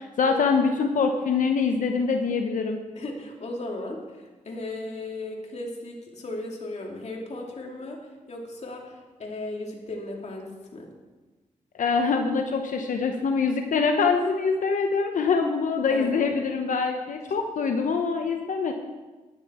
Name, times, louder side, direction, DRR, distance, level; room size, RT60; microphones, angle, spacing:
voice 1, 0.0-2.8 11.8-18.7, left 5 dB, 75° left, 4 dB, 0.9 m, -24 dB
voice 2, 2.9-10.9 15.9-16.3, left 2 dB, 55° left, 0 dB, 2.6 m, -36 dB
12.5 x 10.5 x 4.3 m, 1.2 s
cardioid pair, 80°, 13 cm